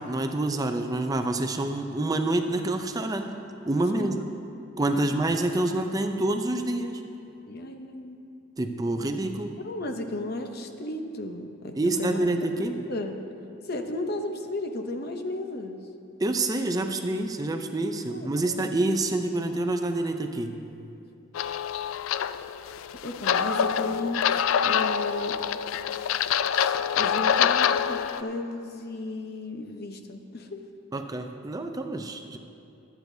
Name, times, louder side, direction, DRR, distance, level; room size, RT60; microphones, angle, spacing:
voice 1, 0.0-3.3 3.7-4.2 4.8-7.0 8.6-9.6 11.8-12.7 16.2-20.6 30.9-32.4, right 2 dB, 20° right, 6 dB, 0.4 m, -27 dB
voice 2, 4.9-5.2 7.5-8.2 9.6-12.3 12.8-13.3 13.6-15.8 18.1-18.7 23.0-24.3 24.6-25.4 26.5-30.6, left 2 dB, 50° left, 5 dB, 0.7 m, -34 dB
sound 1, 21.3-28.2, left 8 dB, 80° left, 0.3 m, -26 dB
23.0 x 8.3 x 2.7 m, 2.7 s
head